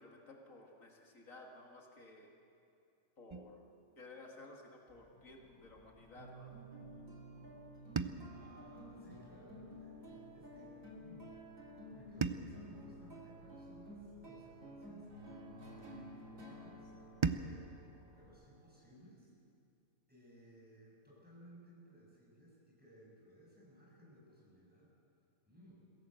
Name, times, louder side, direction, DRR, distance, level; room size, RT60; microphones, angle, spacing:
voice 1, 0.0-2.3 3.2-3.6 4.0-6.5, left 2 dB, 90° left, 0 dB, 2.5 m, -55 dB
sound 1, 3.3-5.5 7.9-10.3 12.2-14.7 17.2-19.8, right 5 dB, 40° right, 0.4 m, -44 dB
sound 2, 4.9-18.4, left 1 dB, 30° left, 3.5 m, -66 dB
sound 3, 6.2-18.9, right 1 dB, 90° right, 3.3 m, -53 dB
voice 2, 8.3-11.3 11.9-15.1 15.6-17.7 18.1-19.3 20.1-24.9 25.4-25.8, equal, 5° right, -5 dB, 6.9 m, -60 dB
22.5 x 16.0 x 7.8 m, 2.5 s
omnidirectional pair, 1.3 m